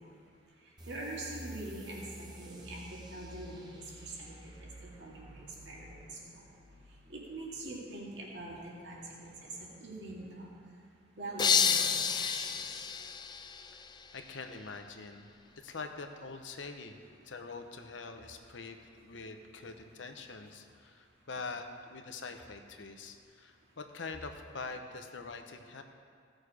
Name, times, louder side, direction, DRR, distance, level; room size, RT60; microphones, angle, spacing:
sound 1, 0.8-7.9, right 1 dB, 25° right, 1.1 m, -51 dB
voice 1, 0.9-2.0 2.4-2.8 3.1-4.5 5.0-6.0 7.1-9.5 9.8-10.5 11.2-12.4, right 2 dB, 65° right, -4 dB, 2.2 m, -43 dB
sound 2, 11.4-14.2, left 7 dB, 25° left, 0.3 m, -30 dB
voice 2, 14.1-15.3 15.6-25.8, left 4 dB, 85° left, 6 dB, 0.8 m, -44 dB
16.5 x 6.4 x 4.9 m, 2.2 s
head